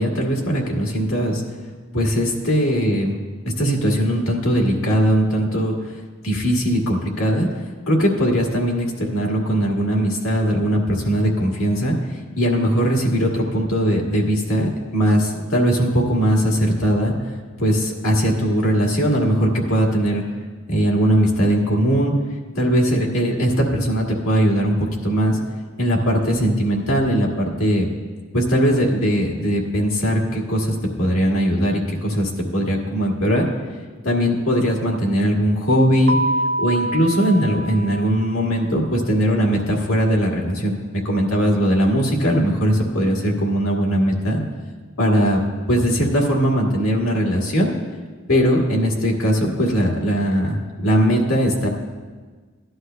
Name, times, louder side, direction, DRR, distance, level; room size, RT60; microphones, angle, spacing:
voice 1, 0.0-1.4 1.9-3.1 3.4-6.0 6.2-17.1 17.6-20.2 20.7-22.1 22.6-25.4 25.8-27.9 28.3-33.4 34.0-36.2 36.6-44.4 45.0-45.4 45.7-47.7 48.3-51.7, equal, 85° left, -2 dB, 1.8 m, -20 dB
Keyboard (musical), 36.1-38.6, right 1 dB, 50° right, 0.6 m, -26 dB
16.5 x 11.5 x 2.2 m, 1.4 s
head